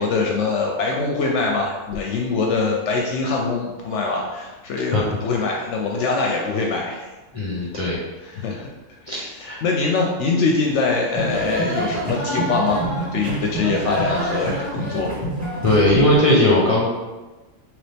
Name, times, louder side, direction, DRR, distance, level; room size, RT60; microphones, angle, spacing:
voice 1, 0.0-7.1 7.5-7.7 8.2-8.7 9.0-15.1, left 4 dB, 70° left, 0 dB, 0.8 m, -23 dB
voice 2, 7.3-8.0 9.1-9.2 9.5-9.6 15.6-16.9, left 1 dB, 40° left, -6 dB, 0.5 m, -18 dB
sound 1, 11.2-16.2, right 1 dB, 15° right, 1.4 m, -26 dB
4.0 x 3.1 x 3.3 m, 1.2 s
omnidirectional pair, 1.3 m